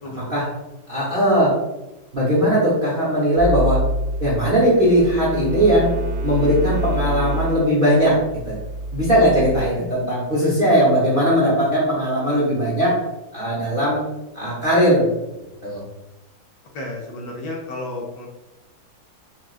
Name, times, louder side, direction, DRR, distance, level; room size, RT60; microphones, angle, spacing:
voice 1, 0.0-0.4 16.7-18.3, left 2 dB, 70° left, 0 dB, 1.2 m, -32 dB
voice 2, 0.9-1.5 2.1-3.8 4.2-5.9 6.2-8.2 8.5-8.6 8.9-13.0 13.3-14.0 14.3-15.1 15.6-15.8, equal, 40° right, -7 dB, 0.9 m, -18 dB
sound 1, 3.4-9.7, right 1 dB, 75° right, 1.1 m, -27 dB
5.9 x 2.4 x 2.4 m, 0.98 s
omnidirectional pair, 2.1 m